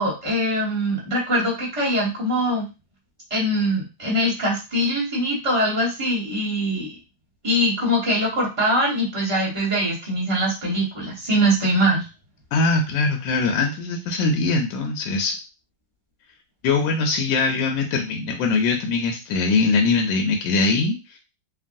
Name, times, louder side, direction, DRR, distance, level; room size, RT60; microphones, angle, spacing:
voice 1, 0.0-2.7 3.3-6.9 7.4-12.0, equal, 20° right, -4 dB, 0.9 m, -22 dB
voice 2, 12.5-15.4 16.6-21.2, left 3 dB, 85° left, 2 dB, 1.3 m, -22 dB
2.9 x 2.5 x 2.5 m, 0.28 s
omnidirectional pair, 2.0 m